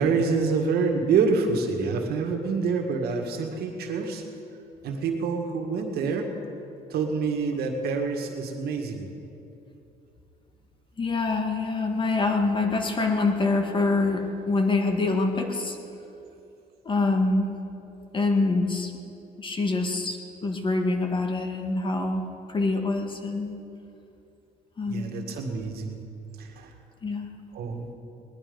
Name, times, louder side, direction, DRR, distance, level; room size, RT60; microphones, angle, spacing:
voice 1, 0.0-4.2 4.8-6.3 6.9-9.1 24.9-26.0 26.4-26.7 27.5-27.9, right 4 dB, 70° right, 3 dB, 1.9 m, -26 dB
voice 2, 11.0-15.8 16.8-17.6 18.1-18.9 19.4-22.2 22.5-23.5 24.8-25.2 27.0-27.3, left 3 dB, 30° left, 4 dB, 1.6 m, -25 dB
19.5 x 11.5 x 5.3 m, 2.8 s
cardioid pair, 110°, 17 cm